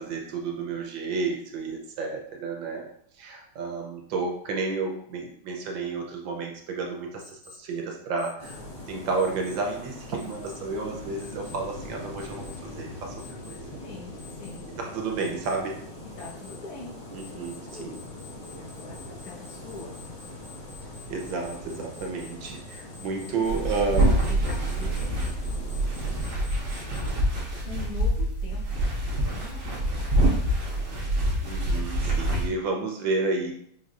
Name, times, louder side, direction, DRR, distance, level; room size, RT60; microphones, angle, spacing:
voice 1, 0.0-2.8 3.2-8.6 8.9-13.1 13.5-13.6 14.8-15.8 17.1-17.9 21.1-24.4 31.4-33.5, right 4 dB, 70° right, 1 dB, 1.4 m, -31 dB
Alarm, 7.2-7.6 8.2-8.6 9.2-9.6 10.2-10.6 11.2-11.6 12.2-12.6 13.2-13.6 14.2-14.6 15.2-15.6 16.2-16.6 17.2-27.1, left 6 dB, 70° left, 0.8 m, -49 dB
sound 1, 8.4-26.2, left 1 dB, 30° left, 1.1 m, -42 dB
voice 2, 13.8-14.7 16.0-18.0 18.5-20.0 23.2-25.2 26.6-27.2 27.6-30.4 30.8-31.2, left 3 dB, 85° left, -4 dB, 2.2 m, -44 dB
sound 2, 23.4-32.5, right 1 dB, 50° right, 1.1 m, -26 dB
5.2 x 3.1 x 2.5 m, 0.66 s
omnidirectional pair, 2.3 m